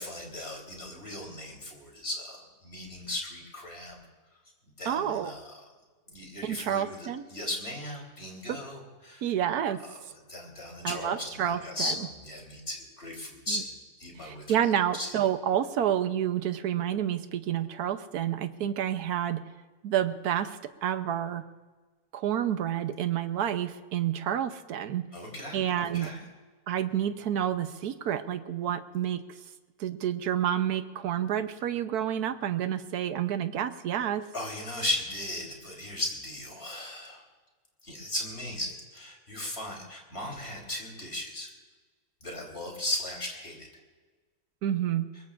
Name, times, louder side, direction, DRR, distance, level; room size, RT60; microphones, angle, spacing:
voice 1, 0.0-4.0 4.8-5.6 6.1-9.2 10.3-14.4 14.9-15.2 25.1-26.2 34.3-37.2 37.8-41.5 42.2-43.7, left 1 dB, 40° left, 0 dB, 3.9 m, -37 dB
voice 2, 4.8-5.3 6.4-7.2 8.5-8.6 9.2-9.8 10.8-11.9 13.5-13.6 14.2-19.4 19.8-21.4 22.1-25.1 25.5-26.1 26.7-29.2 29.8-34.2 44.6-45.1, right 10 dB, 75° right, 10 dB, 1.3 m, -29 dB
23.0 x 21.5 x 2.5 m, 1.4 s
omnidirectional pair, 1.7 m